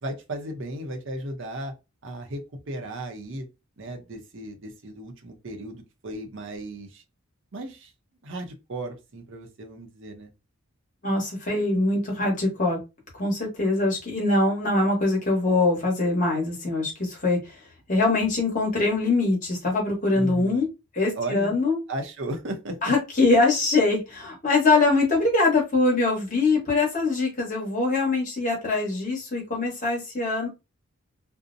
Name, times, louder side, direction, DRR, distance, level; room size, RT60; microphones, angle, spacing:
voice 1, 0.0-1.7 2.0-3.5 3.8-7.0 7.5-7.9 8.2-10.3 20.1-20.7 21.1-21.6 21.9-22.9, right 1 dB, 55° right, 0.6 m, -35 dB
voice 2, 11.0-12.8 13.2-17.6 17.9-20.7 20.9-21.8 22.8-30.5, left 3 dB, 35° left, 1.1 m, -23 dB
2.6 x 2.0 x 2.5 m
head